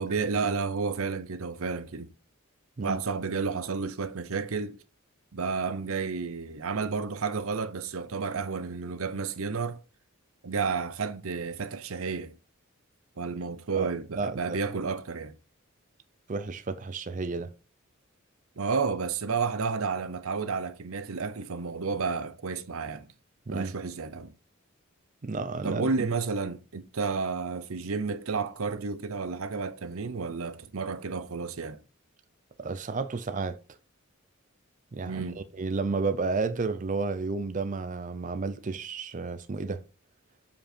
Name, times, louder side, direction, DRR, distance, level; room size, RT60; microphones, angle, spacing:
voice 1, 0.0-2.1 2.8-4.8 5.3-9.8 10.4-12.4 13.2-15.4 18.6-23.1 23.5-24.3 25.6-31.8 35.0-35.4, right 5 dB, 75° right, 0.7 m, -31 dB
voice 2, 14.2-14.6 16.3-17.5 23.5-23.7 25.2-26.1 32.6-33.6 34.9-39.8, right 4 dB, 35° right, 0.5 m, -32 dB
7.3 x 5.2 x 4.4 m
head